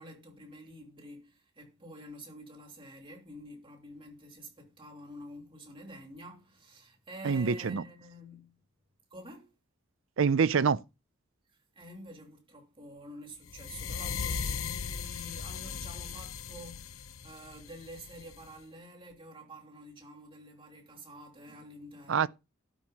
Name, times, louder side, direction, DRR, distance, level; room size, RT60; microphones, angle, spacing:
voice 1, 0.0-8.5 9.1-9.5 11.7-22.3, equal, 25° right, 2.8 m, -49 dB
voice 2, 7.2-7.8 10.2-10.8 22.1-22.3, right 6 dB, 65° right, 0.5 m, -25 dB
sound 1, 13.5-18.5, left 6 dB, 85° left, 0.9 m, -38 dB
12.0 x 4.6 x 7.0 m
head